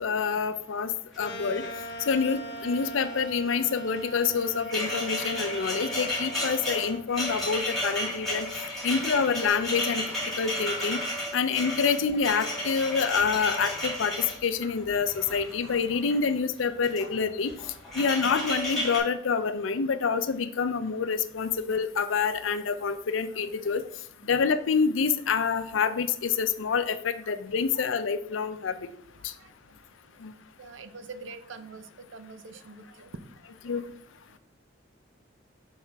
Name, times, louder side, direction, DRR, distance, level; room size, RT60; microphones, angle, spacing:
voice 1, 0.0-1.6 2.1-8.5 8.8-10.0 10.4-11.0 11.3-17.5 17.9-23.8 24.2-28.8 29.2-29.3 30.2-30.3 33.7-33.9, left 5 dB, 90° left, 11 dB, 0.5 m, -27 dB
sound 1, 1.1-1.2 1.5-2.3 2.6-2.8 4.0-16.2 16.7-17.2 17.5-19.0, left 1 dB, ahead, 2.0 m, -33 dB
sound 2, 1.2-7.0, right 1 dB, 65° left, 0.8 m, -40 dB
voice 2, 30.6-33.2 33.6-33.9 34.3-34.4, right 4 dB, 75° right, 11 dB, 0.5 m, -45 dB
5.7 x 5.4 x 3.4 m, 0.67 s
head